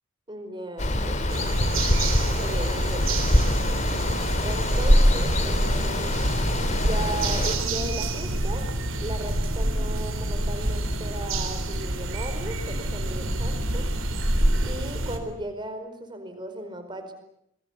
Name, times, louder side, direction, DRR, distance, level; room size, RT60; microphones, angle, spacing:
voice 1, 0.3-1.6 2.4-3.2 4.4-6.2 6.8-8.7 9.0-13.9 14.6-17.1, right 1 dB, 20° right, 7 dB, 4.7 m, -36 dB
Water, 0.8-7.6, left 1 dB, 35° left, 2.6 m, -25 dB
sound 1, 1.3-15.2, right 1 dB, 75° right, 3.9 m, -26 dB
28.0 x 22.0 x 8.4 m, 0.76 s
head